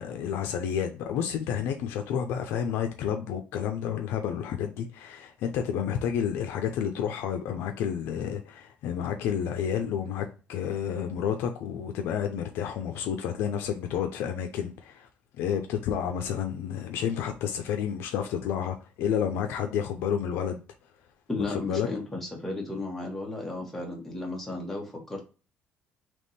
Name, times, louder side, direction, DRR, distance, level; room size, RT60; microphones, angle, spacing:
voice 1, 0.0-15.1 15.4-20.6 21.4-21.9, left 8 dB, 80° left, 0.5 m, -30 dB
voice 2, 21.3-25.2, left 2 dB, 5° left, 1.3 m, -34 dB
3.5 x 3.0 x 4.1 m
cardioid pair, 140°, 4 cm